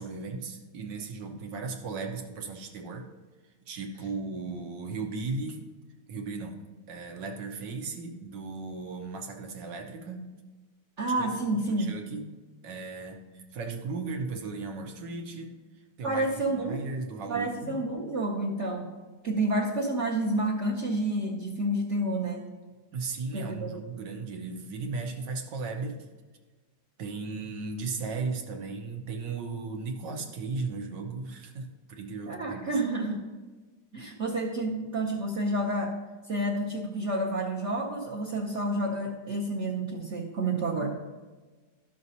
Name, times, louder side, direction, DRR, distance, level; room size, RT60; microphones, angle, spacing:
voice 1, 0.0-3.1 3.7-5.6 6.1-6.6 6.9-10.3 11.2-11.4 11.6-12.3 12.6-17.8 22.9-26.0 27.0-32.7, right 4 dB, 80° right, 3 dB, 1.6 m, -36 dB
voice 2, 11.0-11.9 16.0-17.0 17.3-18.9 19.2-22.5 23.3-23.8 32.3-33.2 33.9-36.0 36.3-41.0, right 1 dB, 50° right, -3 dB, 0.9 m, -29 dB
12.5 x 6.3 x 2.8 m, 1.3 s
omnidirectional pair, 1.9 m